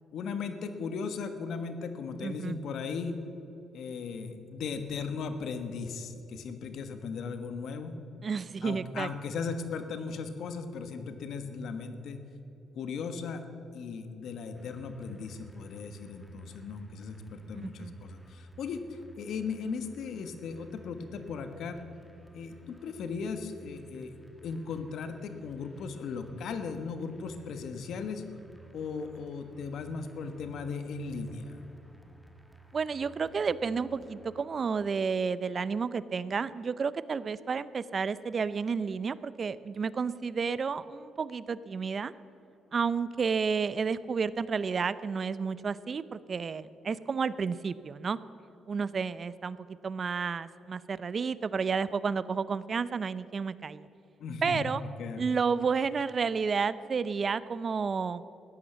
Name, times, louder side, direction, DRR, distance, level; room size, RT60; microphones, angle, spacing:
voice 1, 0.1-3.2 3.7-8.0 8.6-12.2 12.7-13.4 13.7-21.8 22.3-24.1 24.4-28.2 28.7-31.6 54.2-55.2, left 5 dB, 70° left, 8 dB, 1.3 m, -37 dB
voice 2, 2.2-2.6 8.2-9.1 17.5-17.9 32.7-42.1 42.7-48.2 48.7-49.6 49.8-53.9 54.4-54.8 55.2-58.2, right 5 dB, 45° right, 17 dB, 0.5 m, -31 dB
sound 1, 14.5-34.4, right 1 dB, ahead, 1.5 m, -55 dB
14.5 x 10.0 x 7.5 m, 2.9 s
cardioid pair, 90°, 0 cm